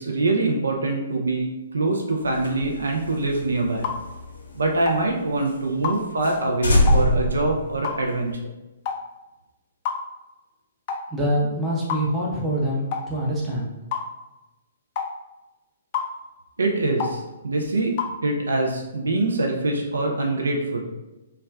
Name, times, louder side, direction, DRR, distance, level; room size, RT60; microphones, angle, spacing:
voice 1, 0.0-1.5 1.7-3.9 4.5-8.4 16.6-17.9 18.2-20.8, right 2 dB, 75° right, 2 dB, 0.4 m, -24 dB
sound 1, 2.3-5.1 5.5-5.6 5.9-6.0 6.2-6.4 6.6-8.3, left 1 dB, 70° left, 0.7 m, -23 dB
sound 2, 3.8-4.0 4.9-5.0 5.8-6.0 6.9-7.1 7.8-8.0 8.9-9.0 9.9-10.0 10.9-11.1 11.9-12.1 12.9-13.1 13.9-14.1 15.0-15.1 15.9-16.1 17.0-17.2 18.0-18.2, left 6 dB, 40° left, 0.3 m, -28 dB
voice 2, 11.1-13.7, equal, 15° right, -6 dB, 0.6 m, -25 dB
2.3 x 2.1 x 3.3 m, 1.0 s
figure-of-eight pair, 125°, 0 cm